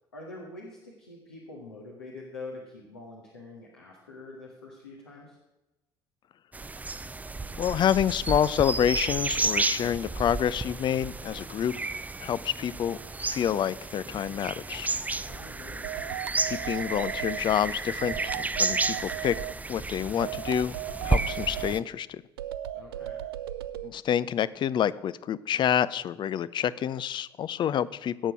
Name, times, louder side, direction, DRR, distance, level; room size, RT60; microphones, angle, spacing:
voice 1, 0.1-5.4 15.2-15.9 22.7-23.2, left 2 dB, 80° left, -3 dB, 1.8 m, -45 dB
sound 1, 6.5-21.8, right 3 dB, 10° right, 0.5 m, -32 dB
voice 2, 7.6-11.7 12.2-14.9 16.5-19.3 19.7-20.8 21.0-22.2 23.8-28.3, left 9 dB, 35° left, 18 dB, 0.5 m, -28 dB
sound 2, 15.8-17.4 18.0-19.5 20.2-21.7 22.4-23.9, right 13 dB, 70° right, 0.5 m, -36 dB
17.5 x 6.8 x 6.1 m, 1.0 s
figure-of-eight pair, 55°, 13 cm